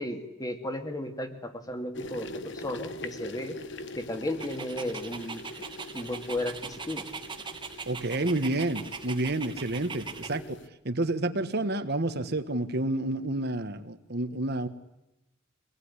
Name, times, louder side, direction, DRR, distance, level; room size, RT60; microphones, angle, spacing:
voice 1, 0.0-3.6 4.0-5.4 5.9-7.0 10.3-10.5, left 1 dB, 20° left, 6 dB, 2.4 m, -34 dB
sound 1, 1.9-10.7, left 1 dB, 60° left, 1.3 m, -43 dB
Dog, 4.4-10.4, right 5 dB, 25° right, 1.6 m, -41 dB
voice 2, 7.9-10.4 10.8-14.7, right 2 dB, 50° right, 10 dB, 1.5 m, -29 dB
26.0 x 19.5 x 9.9 m, 0.93 s
head